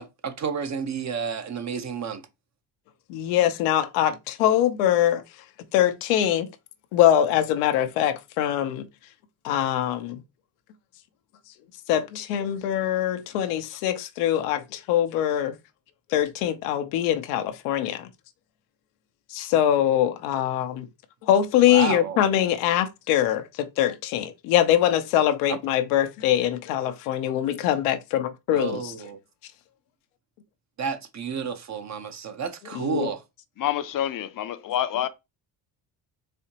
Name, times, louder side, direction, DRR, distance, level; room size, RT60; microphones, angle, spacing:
voice 1, 0.0-2.2 21.7-22.2 25.5-25.6 28.5-29.2 30.8-33.2, right 6 dB, 35° right, 0.7 m, -31 dB
voice 2, 3.1-5.2 5.7-6.5 6.9-8.9 9.4-10.2 11.9-15.6 16.1-18.1 19.3-20.9 21.2-28.9 32.7-33.1, left 11 dB, 85° left, 0.7 m, -23 dB
voice 3, 33.6-35.1, left 11 dB, 45° left, 0.6 m, -27 dB
4.2 x 2.8 x 2.8 m
supercardioid pair, 75°, 49 cm